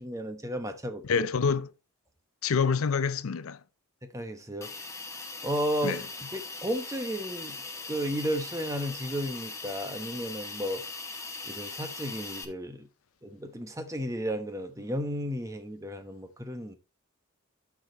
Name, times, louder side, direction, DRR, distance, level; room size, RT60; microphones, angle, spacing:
voice 1, 0.0-1.3 4.0-4.7 5.4-10.8 11.4-12.9 13.2-16.8, equal, 15° right, 1.0 m, -33 dB
voice 2, 1.0-1.7 2.4-3.6 5.8-6.0, left 5 dB, 80° left, 0.5 m, -27 dB
Hiss, 4.6-12.4, left 3 dB, 15° left, 0.8 m, -40 dB
12.0 x 4.8 x 3.2 m
head